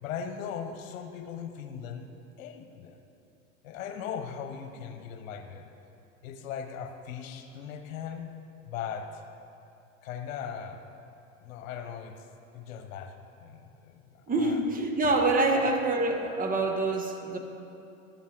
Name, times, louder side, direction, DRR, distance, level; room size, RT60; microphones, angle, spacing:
voice 1, 0.0-2.1 2.4-3.0 3.6-5.7 6.2-8.3 8.7-9.2 10.0-10.8 11.4-12.3 12.5-14.6 15.5-15.8, left 7 dB, 70° left, 6 dB, 1.1 m, -39 dB
voice 2, 14.3-17.4, right 2 dB, 20° right, 3 dB, 1.0 m, -26 dB
13.0 x 7.2 x 3.9 m, 2.7 s
hypercardioid pair, 105°, 41 cm